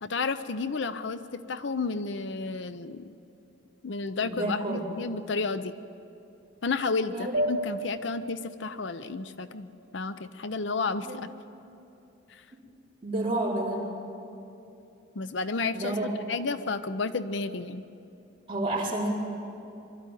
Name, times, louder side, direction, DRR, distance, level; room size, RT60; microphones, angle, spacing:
voice 1, 0.0-3.1 3.8-5.7 6.6-11.3 12.3-12.4 15.1-17.9, left 4 dB, 70° left, 12 dB, 0.7 m, -32 dB
voice 2, 4.2-4.8 7.1-7.3 11.0-11.2 12.5-12.6 13.0-13.9 15.7-16.1 18.5-19.1, right 2 dB, 30° right, -6 dB, 4.5 m, -30 dB
sound 1, 7.3-10.3, right 1 dB, 75° right, 3.2 m, -34 dB
24.0 x 12.5 x 9.2 m, 2.8 s
head